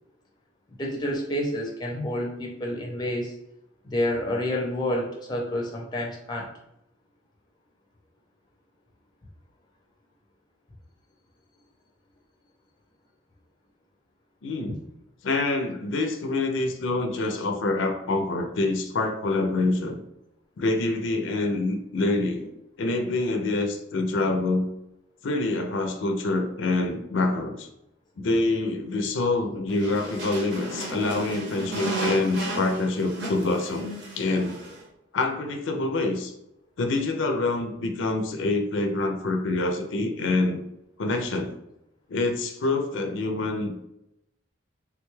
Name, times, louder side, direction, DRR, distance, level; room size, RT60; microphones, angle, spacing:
voice 1, 0.8-3.3 3.8-6.5, left 1 dB, 20° left, 0 dB, 0.5 m, -29 dB
voice 2, 14.4-14.8 15.2-20.0 20.6-22.5 22.8-24.7 25.2-27.7 28.2-34.6 35.1-36.3 36.8-40.6 41.0-41.5 42.1-43.8, left 2 dB, 75° left, 5 dB, 0.4 m, -26 dB
sound 1, 29.7-34.8, right 2 dB, 65° right, 0.8 m, -33 dB
3.4 x 2.2 x 3.0 m, 0.83 s
head